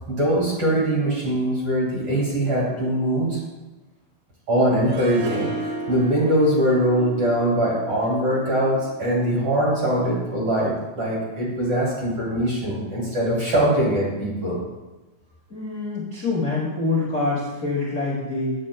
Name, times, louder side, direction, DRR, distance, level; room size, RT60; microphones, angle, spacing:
voice 1, 0.1-3.4 4.5-14.6, right 1 dB, 35° right, -6 dB, 3.0 m, -22 dB
Harp, 4.9-9.9, right 3 dB, 70° right, 1.9 m, -34 dB
voice 2, 15.5-18.5, left 3 dB, 35° left, -7 dB, 1.1 m, -25 dB
9.5 x 8.7 x 2.2 m, 1.1 s
omnidirectional pair, 4.4 m